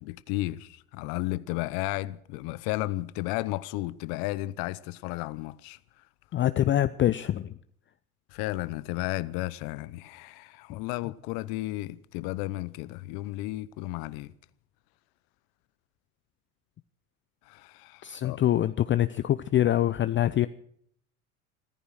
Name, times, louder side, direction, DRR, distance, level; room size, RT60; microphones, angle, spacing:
voice 1, 0.0-6.0 8.3-14.3 17.4-18.4, left 18 dB, 55° left, 0.9 m, -33 dB
voice 2, 6.3-7.5 18.0-20.5, left 12 dB, 30° left, 0.5 m, -24 dB
14.5 x 14.5 x 6.4 m
hypercardioid pair, 85°, 43 cm